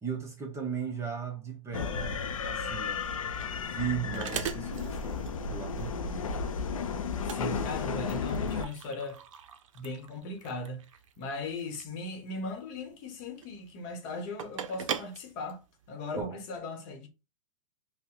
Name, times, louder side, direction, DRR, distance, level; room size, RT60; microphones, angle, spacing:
voice 1, 0.0-3.1 3.5-6.2 16.2-16.4, right 7 dB, 15° right, 0.7 m, -37 dB
sound 1, 1.7-8.7, left 5 dB, 85° left, 0.5 m, -33 dB
sound 2, 2.9-16.2, right 8 dB, 70° right, 0.5 m, -42 dB
voice 2, 7.2-9.2 9.7-10.8 11.2-15.6 15.9-17.1, left 2 dB, 40° left, 0.9 m, -38 dB
2.7 x 2.1 x 3.6 m
hypercardioid pair, 120°, 17 cm